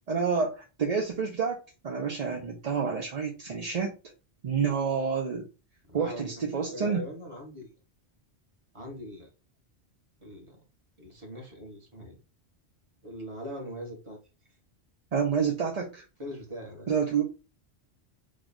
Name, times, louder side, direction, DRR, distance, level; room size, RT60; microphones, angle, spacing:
voice 1, 0.1-1.6 1.8-3.9 4.4-5.5 5.9-7.0 15.1-16.0 16.9-17.2, right 6 dB, 45° right, 0 dB, 0.6 m, -28 dB
voice 2, 5.9-7.7 8.7-9.3 10.2-10.6 11.0-12.2 13.0-14.2 16.2-16.9, equal, 30° right, -1 dB, 1.3 m, -41 dB
3.2 x 2.3 x 3.9 m, 0.30 s
omnidirectional pair, 1.1 m